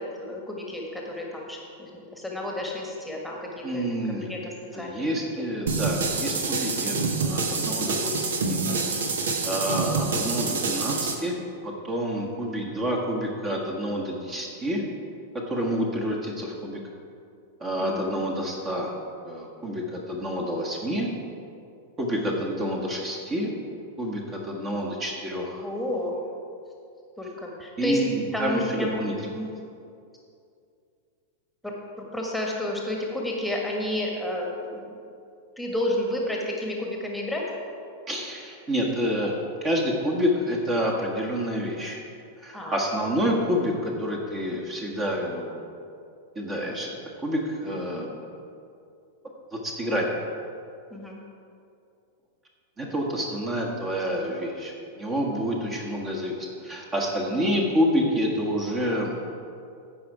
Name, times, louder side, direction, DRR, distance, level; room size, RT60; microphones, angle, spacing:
voice 1, 0.0-5.0 5.4-5.5 6.7-7.0 17.8-18.3 25.6-26.2 27.2-28.0 28.3-29.0 29.2-29.5 31.6-35.1 35.6-37.4 42.5-42.8 50.9-51.2 54.2-54.3, left 1 dB, ahead, -1 dB, 1.5 m, -31 dB
voice 2, 3.6-4.3 4.7-8.6 9.4-11.4 11.6-14.8 15.5-16.8 17.6-18.9 19.2-21.1 22.0-23.5 24.0-25.7 27.8-29.1 38.1-39.3 39.6-42.0 42.4-45.6 46.3-46.9 47.2-48.1 49.5-50.1 52.8-59.1, equal, 25° right, 0 dB, 1.4 m, -28 dB
sound 1, 5.7-11.1, right 4 dB, 65° right, 1.1 m, -27 dB
15.0 x 5.3 x 4.8 m, 2.5 s
figure-of-eight pair, 95°, 0 cm